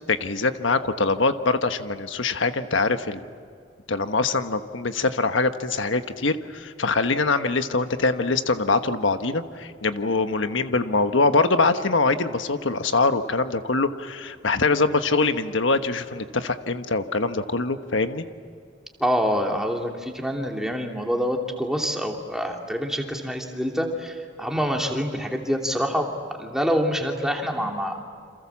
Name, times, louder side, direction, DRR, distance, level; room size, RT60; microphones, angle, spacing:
voice 1, 0.1-3.2 3.9-18.2, left 3 dB, 75° left, 8 dB, 1.3 m, -23 dB
voice 2, 19.0-28.1, equal, 5° right, 1 dB, 2.9 m, -26 dB
29.0 x 27.5 x 7.3 m, 2.1 s
head